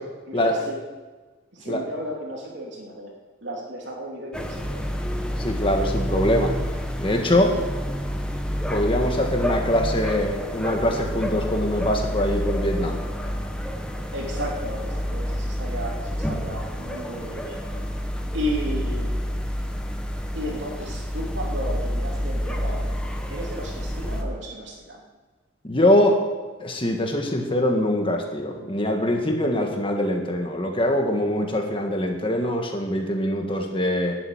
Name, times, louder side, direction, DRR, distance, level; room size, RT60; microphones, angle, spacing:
voice 1, 0.3-0.8 1.5-3.1 3.4-4.8 14.1-17.6 18.3-19.2 20.3-22.9 23.3-25.0, equal, 65° right, -1 dB, 3.0 m, -33 dB
sound 1, 4.3-24.2, equal, 5° left, 1.1 m, -28 dB
voice 2, 5.4-6.5 7.0-7.6 8.7-13.0 25.6-26.2 26.6-34.2, left 1 dB, 25° left, 3 dB, 1.6 m, -23 dB
12.0 x 7.8 x 9.4 m, 1.3 s
head